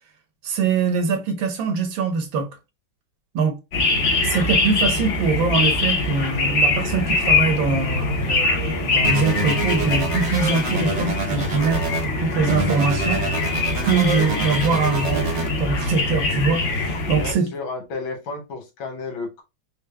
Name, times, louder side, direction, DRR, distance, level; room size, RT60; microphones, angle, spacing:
voice 1, 0.4-2.5 3.3-3.6 4.2-13.2 13.8-15.3 15.6-17.5, right 4 dB, 75° right, 1.7 m, -23 dB
sound 1, 3.7-17.3, left 2 dB, 50° left, 0.9 m, -23 dB
sound 2, 9.0-12.0 12.5-15.5, right 3 dB, 45° right, 1.0 m, -27 dB
voice 2, 17.1-19.4, left 4 dB, 80° left, 1.9 m, -32 dB
4.5 x 2.1 x 3.3 m
omnidirectional pair, 2.1 m